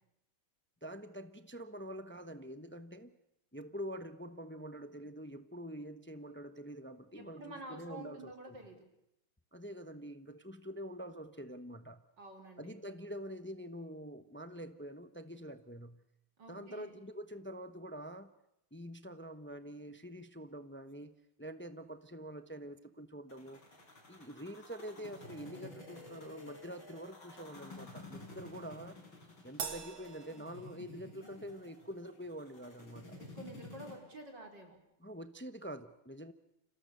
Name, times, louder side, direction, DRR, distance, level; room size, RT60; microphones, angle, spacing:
voice 1, 0.8-3.2 3.5-8.6 9.5-12.0 12.6-16.0 16.5-18.3 18.7-23.6 24.1-29.0 29.4-33.2 35.0-36.3, equal, 15° left, 9 dB, 0.3 m, -46 dB
voice 2, 7.1-8.8 12.2-12.8 16.4-16.9 33.2-34.8, right 2 dB, 55° right, 3 dB, 4.8 m, -49 dB
sound 1, 23.3-34.0, left 2 dB, 70° left, 6.0 m, -52 dB
Crash cymbal, 29.6-31.3, right 6 dB, 70° right, 2.7 m, -44 dB
29.5 x 26.5 x 6.9 m, 0.82 s
omnidirectional pair, 2.2 m